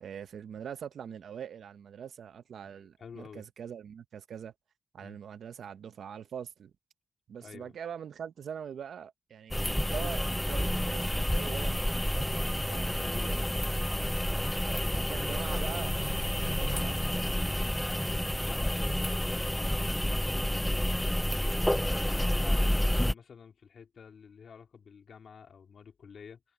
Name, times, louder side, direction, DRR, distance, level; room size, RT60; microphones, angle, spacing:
voice 1, 0.0-4.5 4.9-6.7 7.3-13.8 14.6-16.0 16.4-17.6, right 8 dB, 75° right, 0.9 m, -43 dB
voice 2, 2.6-3.5 5.0-5.2 7.4-7.8 12.9-13.6 14.7-15.7 18.1-21.2 21.7-26.4, left 6 dB, 60° left, 4.0 m, -50 dB
sound 1, 9.5-23.1, left 1 dB, 5° left, 0.4 m, -29 dB
wide cardioid pair, 145°, 0 cm